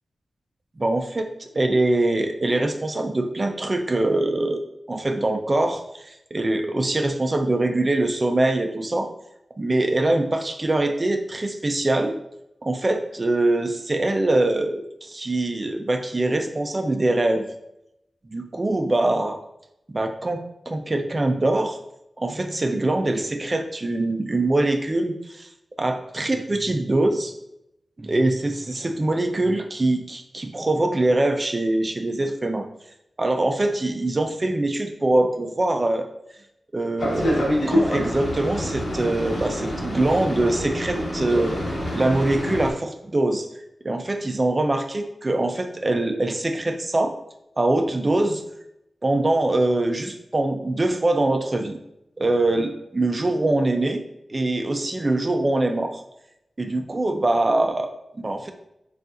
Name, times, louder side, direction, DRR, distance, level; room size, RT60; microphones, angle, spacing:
voice 1, 0.8-9.1 9.6-12.1 12.6-17.5 18.3-19.4 19.9-21.8 22.2-25.5 25.8-27.3 28.0-32.7 33.2-36.1 36.7-41.6 41.9-43.5 43.8-47.1 47.6-48.4 49.0-51.8 52.2-54.0 54.3-56.0 56.6-58.5, right 2 dB, 30° right, 6 dB, 0.4 m, -23 dB
Boat Water vehicle, 37.0-42.7, equal, 50° left, 1.3 m, -26 dB
6.6 x 2.4 x 2.5 m, 0.83 s
wide cardioid pair, 120°, 0 cm